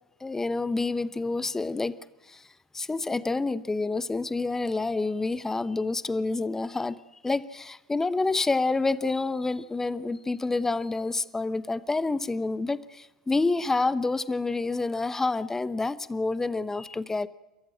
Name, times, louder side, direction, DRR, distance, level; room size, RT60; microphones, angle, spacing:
voice 1, 0.2-1.9 2.3-2.5 2.7-7.0 7.2-17.3, left 3 dB, 10° left, 16 dB, 0.9 m, -28 dB
29.5 x 14.0 x 7.8 m, 1.0 s
figure-of-eight pair, 85°, 4 cm